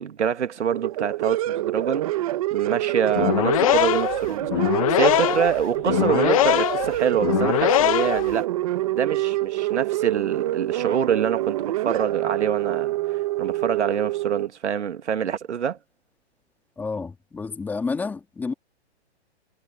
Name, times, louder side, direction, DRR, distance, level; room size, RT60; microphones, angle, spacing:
voice 1, 0.0-8.5 8.9-15.8, right 8 dB, 85° right, 1.9 m, -26 dB
sound 1, 0.7-14.5, right 16 dB, 30° right, 1.4 m, -26 dB
sound 2, 3.1-8.3, left 14 dB, 30° left, 1.0 m, -22 dB
voice 2, 16.8-18.5, left 4 dB, 5° left, 2.0 m, -30 dB
hypercardioid pair, 165°, 34 cm